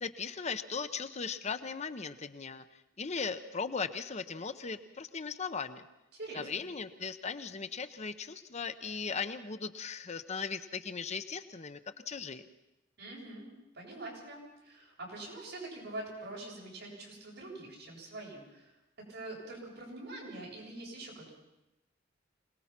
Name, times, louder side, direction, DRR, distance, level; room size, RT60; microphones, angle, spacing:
voice 1, 0.0-2.6 3.0-5.8 6.3-11.8 12.1-12.4, left 5 dB, 35° left, 10 dB, 0.7 m, -38 dB
voice 2, 6.1-6.6 13.0-13.5 13.7-18.7 19.1-21.3, right 2 dB, 65° right, -3 dB, 7.6 m, -44 dB
26.0 x 19.0 x 5.9 m, 0.96 s
head